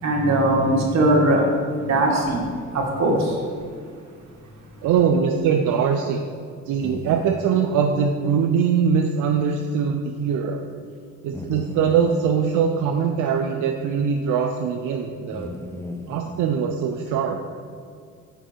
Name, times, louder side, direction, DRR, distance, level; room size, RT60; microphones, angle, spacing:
voice 1, 0.0-1.5 1.8-2.4 2.7-3.4, right 1 dB, 60° right, -1 dB, 1.6 m, -20 dB
voice 2, 4.8-6.2 6.7-10.6 11.2-15.5 16.1-17.4, right 6 dB, 85° right, 3 dB, 0.5 m, -22 dB
sound 1, 6.8-7.4 9.4-9.5 9.8-9.9 11.3-12.2 14.3-14.4 15.3-16.4, left 2 dB, 10° left, 0.6 m, -35 dB
6.9 x 5.1 x 4.4 m, 2.1 s
cardioid pair, 90°, 30 cm